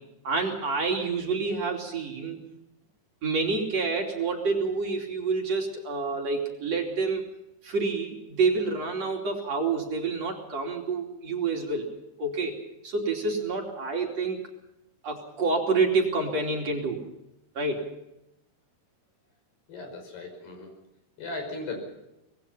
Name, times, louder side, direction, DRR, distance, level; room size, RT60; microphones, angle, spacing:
voice 1, 0.2-2.4 3.2-7.2 7.6-11.9 12.2-12.6 12.8-14.4 15.0-17.0 17.6-17.9, right 4 dB, 45° right, 1 dB, 3.8 m, -28 dB
voice 2, 19.7-20.7 21.2-21.8, left 3 dB, 80° left, 5 dB, 7.5 m, -37 dB
25.0 x 20.5 x 5.6 m, 0.89 s
omnidirectional pair, 4.5 m